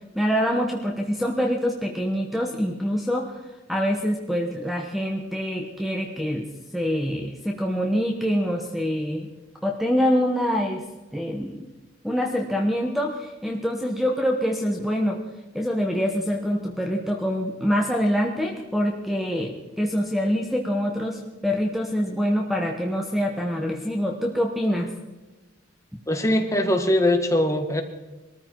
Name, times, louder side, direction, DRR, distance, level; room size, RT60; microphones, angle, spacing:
voice 1, 0.1-3.4 3.7-6.5 6.7-9.3 9.6-10.8 11.1-11.6 12.0-15.2 15.5-24.9, equal, ahead, 2 dB, 1.1 m, -25 dB
voice 2, 26.1-27.8, left 1 dB, 15° left, 4 dB, 1.5 m, -21 dB
21.5 x 14.0 x 4.6 m, 1.1 s
head